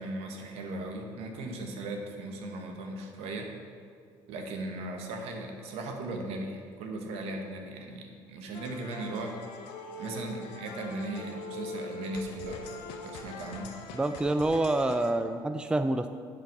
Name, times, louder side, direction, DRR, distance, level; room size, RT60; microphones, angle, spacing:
voice 1, 0.0-3.5 4.3-9.3 10.0-12.8 13.0-13.7, right 2 dB, 70° right, 3 dB, 1.2 m, -37 dB
sound 1, 8.5-15.1, left 3 dB, 75° left, 0.8 m, -42 dB
voice 2, 13.9-16.1, right 2 dB, 10° right, 9 dB, 0.4 m, -27 dB
8.0 x 5.6 x 5.3 m, 2.3 s
hypercardioid pair, 65°, 11 cm